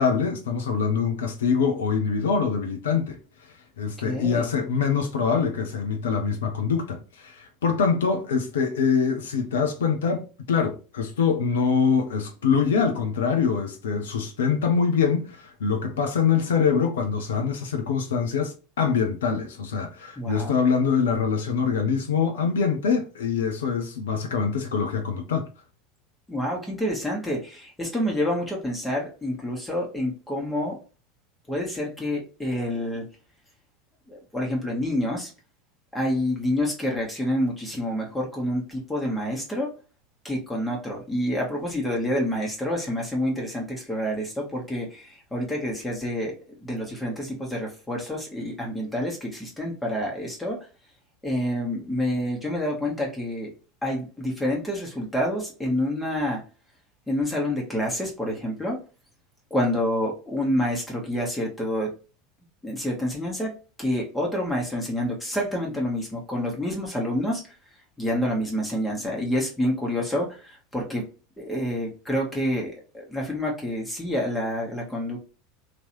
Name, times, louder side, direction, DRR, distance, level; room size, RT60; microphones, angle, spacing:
voice 1, 0.0-25.5, left 6 dB, 70° left, 0.7 m, -24 dB
voice 2, 4.0-4.5 20.2-20.5 26.3-30.8 31.5-33.0 34.1-35.3 35.9-39.7 40.2-46.4 46.6-50.7 51.2-53.5 53.8-56.4 57.1-58.8 59.5-61.9 62.6-63.5 63.8-67.4 68.0-71.0 71.4-75.2, equal, 10° left, 1.2 m, -28 dB
3.0 x 3.0 x 2.7 m
figure-of-eight pair, 80°, 0 cm